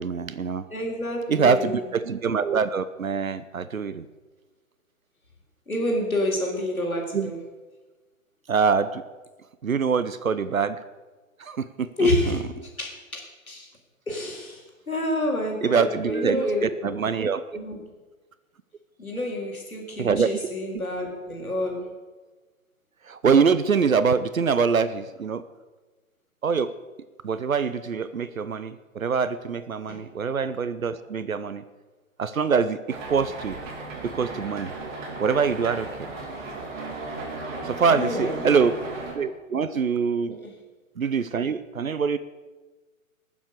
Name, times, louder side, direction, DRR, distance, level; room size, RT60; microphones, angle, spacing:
voice 1, 0.0-0.7 1.3-4.0 7.1-7.3 8.5-9.0 9.6-10.8 11.4-12.4 15.6-17.6 20.0-20.5 23.1-25.4 26.4-26.7 27.2-31.6 32.2-33.6 34.1-34.7 35.2-36.1 37.6-38.8 39.1-40.3 41.0-42.2, right 5 dB, 75° right, 13 dB, 0.9 m, -24 dB
voice 2, 0.7-1.9 5.7-7.4 12.0-13.7 14.1-16.7 17.5-17.8 19.0-21.9 29.9-30.0 37.9-38.5 40.3-40.5, left 1 dB, 85° left, 0 dB, 3.9 m, -28 dB
sound 1, 32.9-39.1, right 3 dB, 35° right, 4.0 m, -35 dB
19.5 x 7.3 x 6.7 m, 1.3 s
figure-of-eight pair, 130°, 41 cm